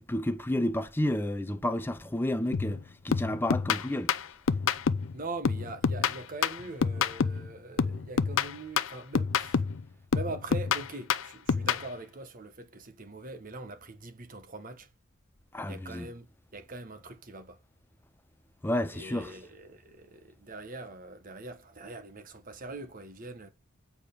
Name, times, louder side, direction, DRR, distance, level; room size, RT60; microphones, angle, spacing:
voice 1, 0.0-4.1 15.5-16.1 18.6-19.3, left 1 dB, 10° left, 0.6 m, -31 dB
sound 1, 2.5-2.8 3.1-5.1 5.4-7.5 7.8-9.8 10.1-11.9, left 6 dB, 65° left, 0.5 m, -28 dB
voice 2, 5.1-9.7 10.1-14.9 15.7-17.6 18.9-23.5, right 2 dB, 40° right, 1.1 m, -42 dB
8.8 x 4.8 x 5.2 m
head